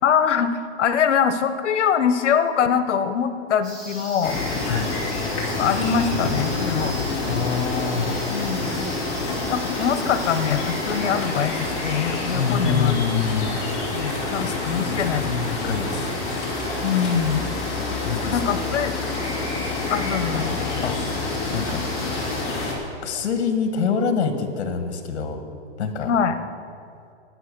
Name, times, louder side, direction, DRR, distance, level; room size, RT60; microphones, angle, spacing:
voice 1, 0.0-4.4 5.5-7.0 8.3-8.8 9.5-12.9 13.9-15.3 16.8-17.5 18.2-18.9 19.9-20.6 26.0-26.4, left 7 dB, 85° left, 11 dB, 1.1 m, -23 dB
sound 1, 3.6-22.4, equal, ahead, 3.7 m, -41 dB
sound 2, 4.2-22.7, left 3 dB, 20° left, 2.0 m, -27 dB
voice 2, 4.6-4.9 7.3-8.3 12.3-14.1 14.4-16.1 17.8-18.4 20.8-21.0 21.5-21.8 23.0-25.4 25.8-26.1, left 5 dB, 70° left, 6 dB, 1.6 m, -26 dB
11.0 x 8.8 x 6.9 m, 2.4 s
hypercardioid pair, 175°, 34 cm